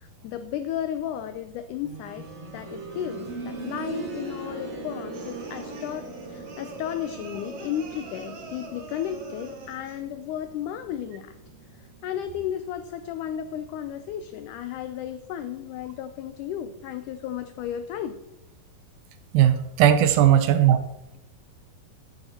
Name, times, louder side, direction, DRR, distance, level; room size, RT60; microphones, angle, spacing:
voice 1, 0.0-2.3 2.5-11.3 11.8-18.2, left 10 dB, 90° left, 10 dB, 1.8 m, -34 dB
sound 1, 1.8-12.6 14.0-14.1, right 2 dB, 40° right, 2.5 m, -40 dB
sound 2, 5.1-10.0, right 2 dB, 60° right, 1.0 m, -43 dB
voice 2, 19.3-20.8, right 10 dB, 80° right, 10 dB, 2.5 m, -18 dB
12.5 x 8.9 x 4.3 m, 0.87 s
omnidirectional pair, 4.3 m